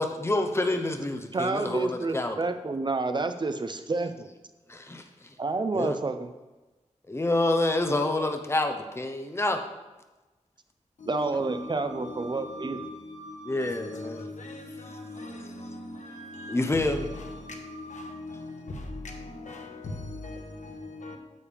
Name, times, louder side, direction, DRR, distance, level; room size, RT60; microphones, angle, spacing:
voice 1, 0.0-2.4 4.7-5.0 5.7-6.0 7.1-9.6 13.5-14.2 16.5-17.0, left 2 dB, 20° left, 5 dB, 0.8 m, -27 dB
voice 2, 1.3-4.3 5.4-6.3 11.1-12.8, right 3 dB, 40° right, 8 dB, 0.6 m, -29 dB
voice 3, 11.0-21.2, left 2 dB, 80° left, 2 dB, 1.2 m, -41 dB
Wind instrument woodwind instrument, 11.3-14.3 14.7-15.4 16.0-18.2, right 2 dB, 70° right, 2.4 m, -48 dB
9.4 x 7.2 x 3.5 m, 1.1 s
wide cardioid pair, 100°, 12 cm